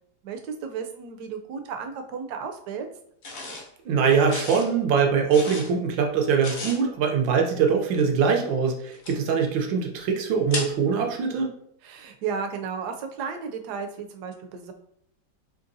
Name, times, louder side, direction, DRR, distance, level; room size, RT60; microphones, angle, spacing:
voice 1, 0.2-2.9 11.8-14.7, right 6 dB, 70° right, 5 dB, 1.0 m, -33 dB
sound 1, 3.2-3.7 4.3-4.7 5.3-5.7 6.4-6.8 8.9-9.1 10.5-10.7, left 2 dB, 50° left, 0.9 m, -34 dB
voice 2, 3.8-11.5, right 6 dB, 90° right, 2 dB, 1.4 m, -22 dB
3.8 x 2.9 x 2.6 m, 0.68 s
omnidirectional pair, 2.0 m